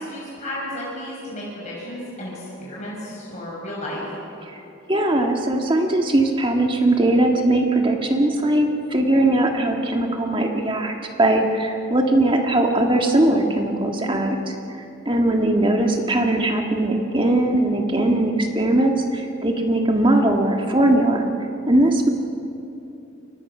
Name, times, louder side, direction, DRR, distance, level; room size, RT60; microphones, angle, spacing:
voice 1, 0.0-4.0, left 1 dB, 35° left, -6 dB, 6.0 m, -33 dB
voice 2, 4.9-14.5 15.0-21.3 21.7-22.1, right 1 dB, 25° right, 2 dB, 1.7 m, -20 dB
29.0 x 23.0 x 6.1 m, 2.8 s
head